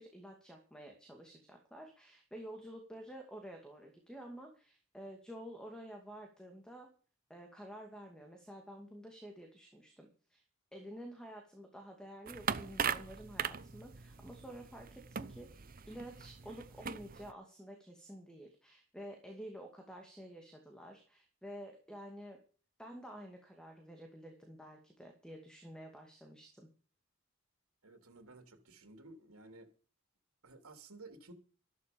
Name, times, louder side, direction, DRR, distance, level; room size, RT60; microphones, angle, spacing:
voice 1, 0.0-6.9 7.3-10.4 10.7-22.4 22.8-26.7, equal, 5° left, 2.4 m, -50 dB
sound 1, 12.3-17.3, right 7 dB, 40° right, 0.7 m, -40 dB
voice 2, 27.8-29.7 30.4-31.3, right 2 dB, 85° right, 3.3 m, -54 dB
13.5 x 12.0 x 5.4 m
head